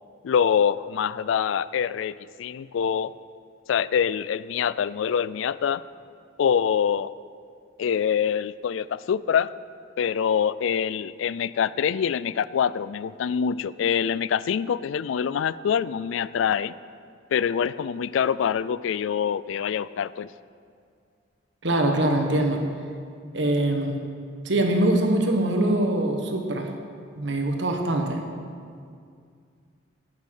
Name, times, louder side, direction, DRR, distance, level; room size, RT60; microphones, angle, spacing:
voice 1, 0.2-3.1 3.7-5.8 6.4-7.1 7.8-9.5 10.0-16.7 17.3-20.3, left 7 dB, 85° left, 18 dB, 0.3 m, -25 dB
voice 2, 21.6-22.6 23.3-24.0 24.4-26.7 27.2-28.2, right 1 dB, 70° right, 3 dB, 1.5 m, -23 dB
11.5 x 8.6 x 6.5 m, 2.3 s
head